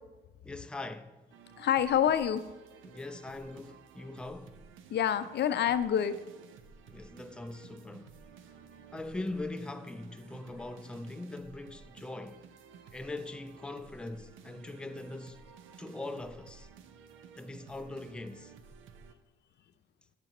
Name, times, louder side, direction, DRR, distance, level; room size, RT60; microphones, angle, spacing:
voice 1, 0.4-1.2 2.8-4.6 6.9-8.2 8.9-12.5 12.9-15.4 15.8-16.7 17.4-18.5, left 2 dB, 5° left, 0.5 m, -41 dB
sound 1, 1.3-19.1, right 6 dB, 80° right, 0.7 m, -54 dB
voice 2, 1.6-2.4 4.9-6.2, left 9 dB, 60° left, 0.5 m, -27 dB
13.0 x 6.8 x 2.9 m
cardioid pair, 90°, 20 cm